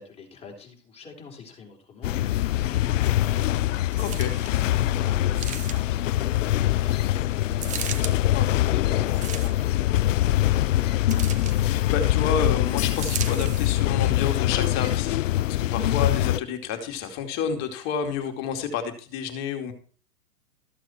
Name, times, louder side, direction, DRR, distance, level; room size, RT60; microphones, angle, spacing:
voice 1, 0.0-3.7 4.1-8.4 8.6-9.9, left 5 dB, 15° left, 0 dB, 4.0 m, -46 dB
sound 1, 2.0-16.4, left 14 dB, 55° left, 0.6 m, -23 dB
sound 2, 3.9-4.6 5.3-6.0 7.6-8.1 9.1-9.8 11.1-11.6 12.9-13.8 14.5-14.6, right 8 dB, 15° right, 0.9 m, -36 dB
voice 2, 4.0-4.3 8.3-8.7 11.6-19.7, left 6 dB, 35° left, 6 dB, 2.5 m, -30 dB
14.0 x 7.8 x 4.5 m, 0.42 s
hypercardioid pair, 130°, 47 cm